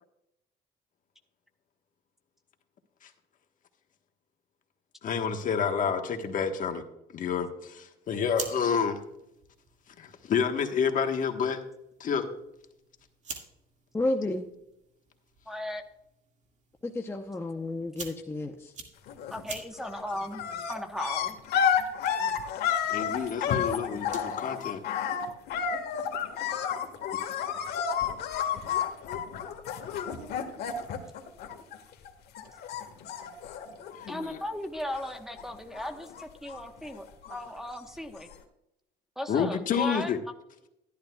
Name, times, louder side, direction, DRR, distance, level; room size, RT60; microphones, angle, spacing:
voice 1, 5.0-6.8 7.1-9.0 10.0-11.6 12.0-12.3 22.9-24.8 34.1-34.4 37.2-37.3 39.3-40.2, left 6 dB, 50° left, 1.3 m, -29 dB
sound 1, 8.0-24.4, right 4 dB, 45° right, 2.0 m, -48 dB
voice 2, 13.9-14.5 16.8-18.7, left 2 dB, 15° left, 0.7 m, -31 dB
voice 3, 15.5-15.8 19.3-21.4 23.2-23.4 32.4-32.5 34.1-38.3 39.2-40.1, left 1 dB, ahead, 1.1 m, -37 dB
sound 2, 19.1-19.5 19.8-32.1 32.3-34.5 34.8-35.4 35.7-37.6 38.3-38.4, left 8 dB, 75° left, 1.5 m, -31 dB
12.5 x 11.5 x 2.3 m
cardioid pair, 110°, 17 cm